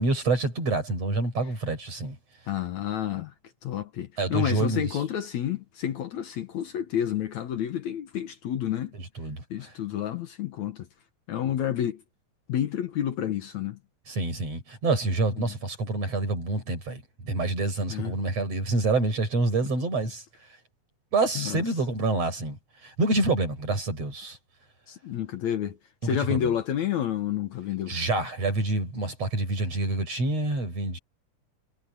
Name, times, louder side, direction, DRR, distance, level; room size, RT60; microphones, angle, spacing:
voice 1, 0.0-2.2 4.2-5.0 9.2-9.7 14.1-20.2 21.1-24.4 26.0-26.5 27.9-31.0, right 2 dB, 50° right, 7.7 m, -27 dB
voice 2, 2.5-3.3 3.6-8.9 9.5-10.9 11.3-12.0 12.5-13.8 15.4-15.5 17.9-18.1 21.4-21.6 24.9-25.8 26.0-28.0, left 10 dB, 65° left, 2.3 m, -30 dB
omnidirectional pair, 3.8 m